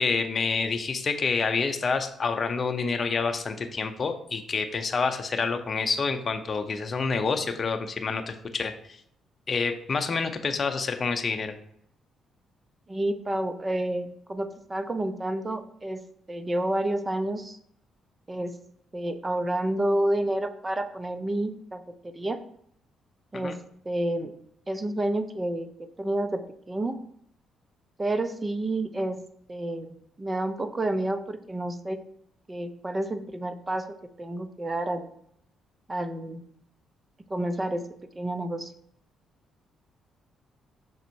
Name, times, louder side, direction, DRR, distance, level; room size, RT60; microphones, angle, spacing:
voice 1, 0.0-8.7 9.5-11.5 23.3-23.5, left 4 dB, 40° left, 6 dB, 0.7 m, -28 dB
voice 2, 12.9-16.0 16.3-17.6 18.3-18.5 18.9-22.4 23.3-23.6 23.8-24.3 24.7-26.4 26.7-27.0 28.0-29.2 29.5-32.0 32.5-33.9 34.2-35.1 35.9-36.5 37.3-37.8 38.2-38.7, right 1 dB, 20° right, 10 dB, 0.6 m, -29 dB
6.3 x 4.0 x 4.6 m, 0.69 s
cardioid pair, 90°, 0 cm